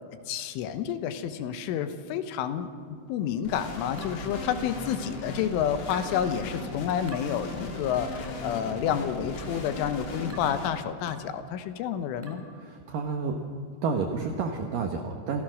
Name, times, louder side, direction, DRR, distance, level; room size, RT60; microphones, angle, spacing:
voice 1, 0.3-12.4, left 9 dB, 80° left, 10 dB, 3.5 m, -30 dB
sound 1, 3.4-10.7, left 3 dB, 55° left, 5.2 m, -37 dB
sound 2, 4.0-5.1 5.9-6.2 7.1-7.3 8.2-8.5 9.3-9.6 10.3-10.6 11.1-11.3 12.2-12.5, right 1 dB, 5° right, 1.7 m, -45 dB
voice 2, 12.6-13.4 13.8-15.4, right 4 dB, 75° right, 4 dB, 2.0 m, -30 dB
26.5 x 16.5 x 6.4 m, 2.3 s
omnidirectional pair, 5.7 m